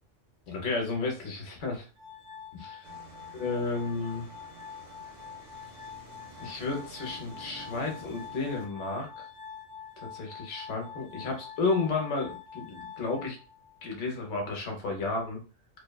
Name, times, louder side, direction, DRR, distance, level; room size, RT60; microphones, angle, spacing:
voice 1, 0.5-1.9 2.5-2.8 3.3-4.3 6.4-9.1 10.0-13.4 13.8-15.4, left 3 dB, 70° left, 2 dB, 1.1 m, -32 dB
Glass, 2.0-14.0, left 7 dB, 90° right, 1.1 m, -46 dB
sound 1, 2.8-8.7, right 2 dB, 50° right, 0.9 m, -50 dB
2.8 x 2.1 x 2.2 m, 0.35 s
omnidirectional pair, 1.3 m